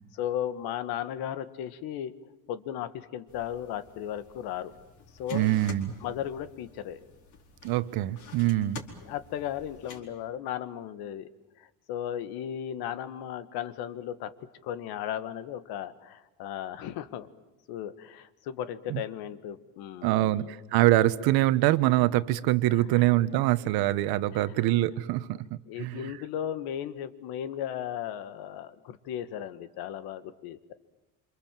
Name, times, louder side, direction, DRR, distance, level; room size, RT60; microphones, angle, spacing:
voice 1, 0.1-2.1 2.5-4.7 5.2-5.5 6.0-7.0 9.0-11.3 11.6-17.3 17.7-20.5 22.9-23.1 24.3-24.4 25.7-30.7, left 10 dB, 85° left, 12 dB, 1.6 m, -36 dB
sound 1, 3.3-10.0, left 4 dB, 55° left, 4.5 m, -49 dB
voice 2, 5.3-5.9 7.6-8.8 18.9-19.0 20.0-26.1, right 15 dB, 85° right, 14 dB, 1.2 m, -24 dB
27.5 x 26.5 x 7.6 m, 0.99 s
cardioid pair, 160°, 36 cm